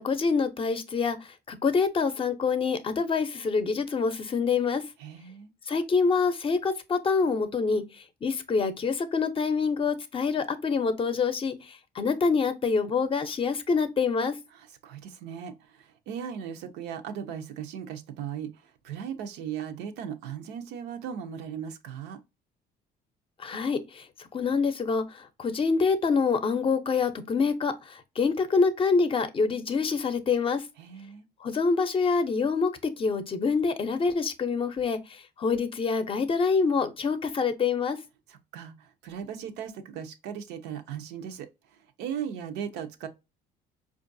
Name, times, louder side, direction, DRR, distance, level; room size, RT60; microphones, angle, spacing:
voice 1, 0.0-4.8 5.7-14.4 23.4-30.6 31.4-38.0, left 5 dB, 30° left, 0.5 m, -26 dB
voice 2, 5.0-5.5 14.5-22.2 30.8-31.3 38.3-43.1, right 8 dB, 85° right, 0.6 m, -38 dB
4.5 x 2.4 x 2.5 m
cardioid pair, 110°, 17 cm